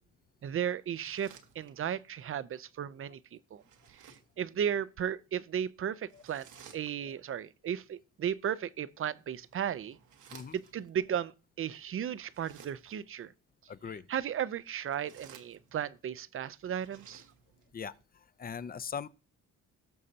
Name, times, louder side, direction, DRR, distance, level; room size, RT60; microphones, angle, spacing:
voice 1, 0.4-3.6 4.0-10.0 10.5-13.3 14.1-17.2, right 9 dB, 45° right, 0.6 m, -35 dB
sound 1, 0.8-2.1 3.6-4.4 6.1-7.3 9.1-10.9 12.2-13.1 14.7-16.0 16.6-17.7, right 7 dB, 80° right, 1.5 m, -57 dB
voice 2, 13.7-14.0 17.7-19.1, left 6 dB, 30° left, 0.6 m, -41 dB
17.5 x 6.5 x 2.8 m
cardioid pair, 90°, 30 cm